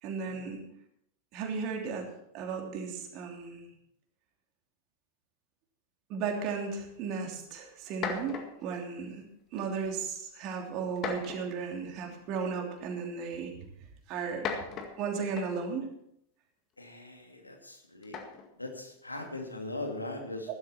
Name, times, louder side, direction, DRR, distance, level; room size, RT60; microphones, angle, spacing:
voice 1, 0.0-0.6 1.3-2.1 2.3-3.7 6.1-9.2 9.5-13.7 14.1-14.5 15.0-15.9 20.5-20.6, right 5 dB, 40° right, 1 dB, 3.1 m, -35 dB
sound 1, 7.3-7.4 7.9-8.7 9.6-9.9 11.0-11.7 12.8-12.9 14.2-15.7 18.0-18.5, left 6 dB, 35° left, 1.9 m, -38 dB
voice 2, 16.8-18.2 18.6-20.5, left 2 dB, 85° left, 3 dB, 2.5 m, -40 dB
15.0 x 12.5 x 4.4 m, 0.75 s
figure-of-eight pair, 90°, 0 cm